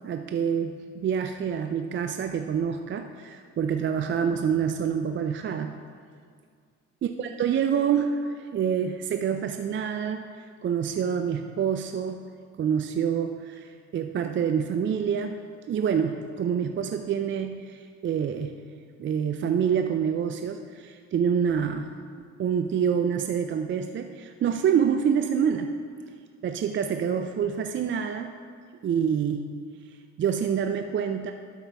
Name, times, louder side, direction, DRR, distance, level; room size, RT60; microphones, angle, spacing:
voice 1, 0.0-5.8 7.0-12.2 12.6-15.4 15.7-18.6 19.0-22.0 22.4-25.7 26.4-28.3 28.8-29.5 30.2-31.3, right 7 dB, 40° right, 6 dB, 0.4 m, -27 dB
12.5 x 5.4 x 3.4 m, 2.1 s
cardioid pair, 90°, 30 cm